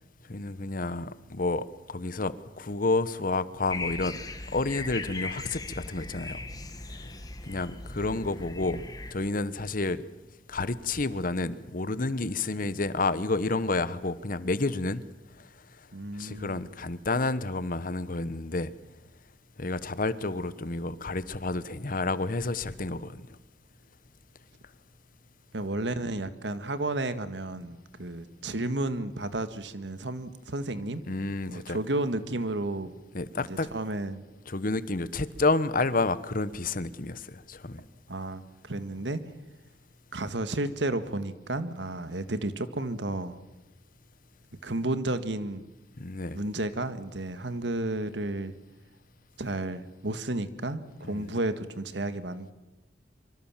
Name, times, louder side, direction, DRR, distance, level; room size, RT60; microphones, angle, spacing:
voice 1, 0.3-4.2 4.5-6.4 7.5-8.8 9.1-10.0 10.5-15.0 16.2-18.7 19.6-23.2 31.1-31.8 33.1-33.7 34.5-37.8 46.0-46.4 51.0-51.3, left 3 dB, 50° left, 1.2 m, -30 dB
sound 1, 3.7-9.1, left 2 dB, 20° left, 1.8 m, -38 dB
voice 2, 15.9-16.6 25.5-31.0 31.5-32.9 33.4-34.2 38.1-39.2 40.1-43.4 44.6-45.7 46.3-48.5 49.4-52.5, right 2 dB, 85° right, 1.7 m, -32 dB
25.0 x 24.5 x 7.5 m
head